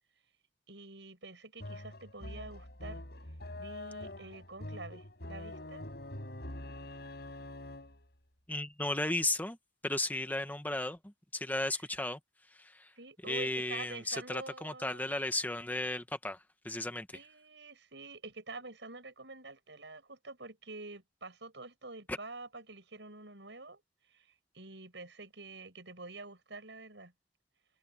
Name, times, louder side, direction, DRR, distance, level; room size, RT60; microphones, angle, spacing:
voice 1, 0.7-3.0 3.6-5.8 11.7-11.8 13.0-15.1 17.1-23.8 24.1-24.3 24.5-27.1, right 3 dB, 75° right, 7.4 m, -47 dB
sound 1, 1.6-8.1, left 1 dB, 60° left, 6.4 m, -45 dB
voice 2, 8.5-9.6 9.8-11.0 11.3-12.2 12.6-12.9 13.3-16.4 16.6-17.1 22.1-22.2, left 2 dB, 10° left, 1.2 m, -34 dB
head